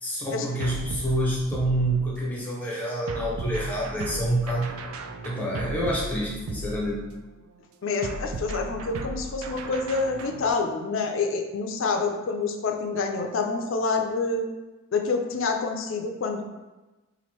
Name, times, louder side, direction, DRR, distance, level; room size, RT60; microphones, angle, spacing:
voice 1, 0.0-4.8 5.2-7.1, right 1 dB, 10° left, -5 dB, 0.7 m, -27 dB
sound 1, 0.6-2.3 3.1-7.3 8.0-10.5, right 2 dB, 75° right, 0.3 m, -36 dB
voice 2, 7.8-14.5 14.9-16.4, left 4 dB, 65° left, 4 dB, 0.4 m, -27 dB
3.0 x 2.5 x 4.3 m, 1.1 s
head